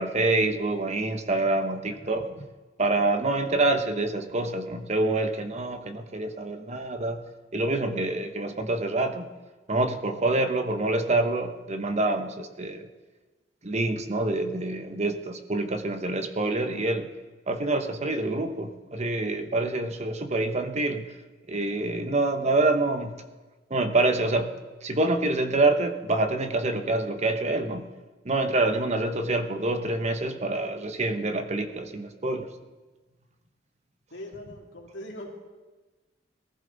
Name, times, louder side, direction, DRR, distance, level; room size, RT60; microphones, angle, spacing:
voice 1, 0.0-2.3 2.8-7.2 7.5-9.2 9.7-12.9 13.6-17.1 17.5-21.0 21.5-23.1 23.7-24.5 24.8-27.9 28.2-32.5, right 2 dB, 40° right, 7 dB, 1.0 m, -26 dB
voice 2, 34.1-35.3, left 1 dB, 85° left, 0 dB, 2.7 m, -40 dB
19.0 x 14.0 x 4.0 m, 1.3 s
head